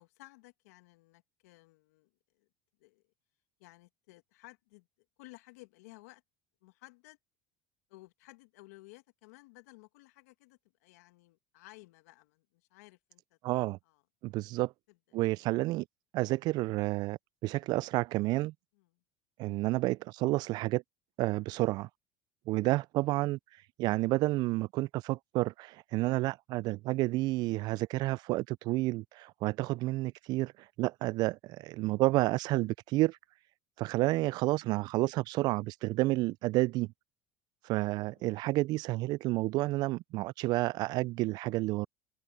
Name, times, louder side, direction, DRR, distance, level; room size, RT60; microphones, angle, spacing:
voice 1, 0.0-2.1 2.4-2.5 2.8-3.0 3.6-4.9 5.2-6.2 6.6-7.2 7.9-13.4 13.9-14.0 14.9-15.0 18.8-18.9 38.1-38.3, left 22 dB, 75° left, 1.9 m, -56 dB
voice 2, 13.4-13.8 14.2-14.7 15.1-15.8 16.1-18.5 19.4-20.8 21.2-21.9 22.5-23.4 23.8-30.5 30.8-33.2 33.8-36.9 37.6-41.9, right 19 dB, 55° right, 0.4 m, -30 dB
hypercardioid pair, 80°, 8 cm